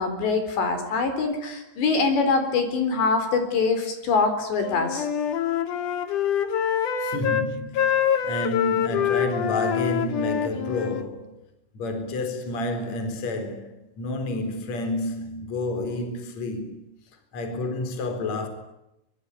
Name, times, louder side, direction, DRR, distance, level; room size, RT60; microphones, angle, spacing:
voice 1, 0.0-5.1, left 4 dB, 70° left, 6.3 m, -24 dB
Wind instrument woodwind instrument, 4.6-7.5 7.7-11.1, left 9 dB, 55° left, 2.8 m, -25 dB
voice 2, 7.0-11.4 11.7-16.7 17.3-18.5, left 2 dB, 40° left, 4.9 m, -30 dB
25.0 x 24.0 x 9.8 m
omnidirectional pair, 5.3 m